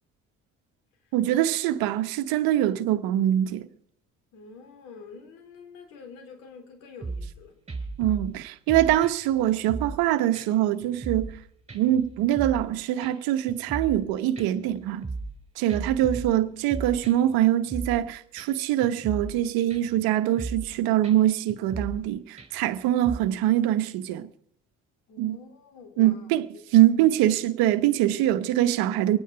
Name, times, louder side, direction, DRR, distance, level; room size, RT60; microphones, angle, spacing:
voice 1, 1.1-3.7 8.0-11.4 11.7-15.0 15.6-24.3 25.2-25.4 26.0-26.5 26.7-29.2, right 13 dB, 80° right, 1.1 m, -23 dB
voice 2, 4.3-7.5 25.1-26.3 26.5-26.6, left 5 dB, 85° left, 3.3 m, -47 dB
sound 1, 7.0-7.4 7.7-8.4 8.7-10.0 10.3-10.5 10.8-11.4 11.7-12.7 13.0-13.1 13.5-14.1 14.4-15.4 15.7-17.4 17.7-18.1 18.4-18.5 18.8-19.4 19.7-20.0 20.3-20.7 21.0-21.1 21.5-22.1 22.4-22.7 23.0-23.2, right 3 dB, 20° right, 4.5 m, -36 dB
24.0 x 9.3 x 5.5 m
hypercardioid pair, 60°, 36 cm